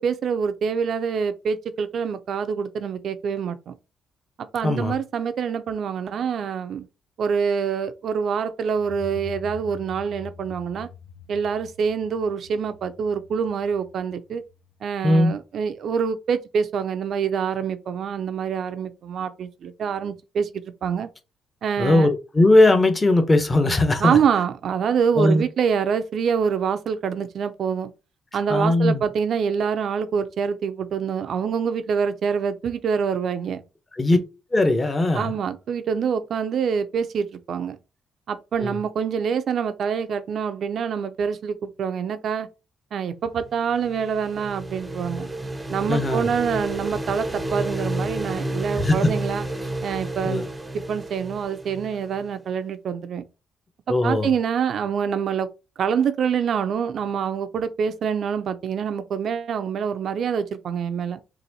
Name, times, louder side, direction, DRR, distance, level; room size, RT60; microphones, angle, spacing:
voice 1, 0.0-3.7 4.5-6.9 7.2-10.9 11.3-14.4 14.8-20.5 20.8-21.1 21.6-22.1 24.0-27.9 28.3-33.6 35.1-37.8 38.3-42.5 42.9-45.3 45.7-49.5 49.8-50.4 50.9-53.3 53.9-55.5 55.8-61.2, right 7 dB, 65° right, 0.5 m, -25 dB
voice 2, 4.6-4.9 15.0-15.3 21.8-24.2 25.2-25.4 28.5-29.0 34.0-34.2 34.5-35.3 38.6-38.8 45.9-46.3 48.8-49.1 50.2-50.5 53.9-54.3, left 2 dB, 20° left, 0.9 m, -19 dB
sound 1, 8.8-15.3, left 6 dB, 60° left, 0.6 m, -44 dB
sound 2, 43.5-52.3, right 1 dB, 15° right, 0.5 m, -31 dB
4.0 x 2.6 x 2.8 m
cardioid pair, 90°, 0 cm